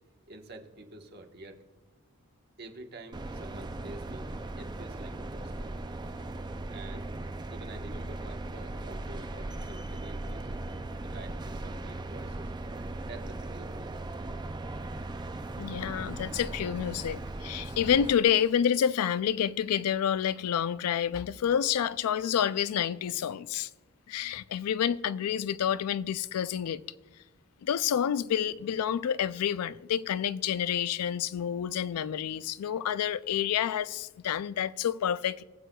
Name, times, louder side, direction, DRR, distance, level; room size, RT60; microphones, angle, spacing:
voice 1, 0.3-1.6 2.6-5.8 6.0-6.1 6.7-7.1 7.5-10.6 11.0-12.5 13.0-14.1, right 2 dB, 45° right, 1.2 m, -48 dB
sound 1, 3.1-18.1, right 2 dB, 20° right, 0.4 m, -38 dB
voice 2, 15.6-23.7 24.1-26.8 27.6-35.4, left 9 dB, 85° left, 0.3 m, -29 dB
21.5 x 7.7 x 2.3 m
head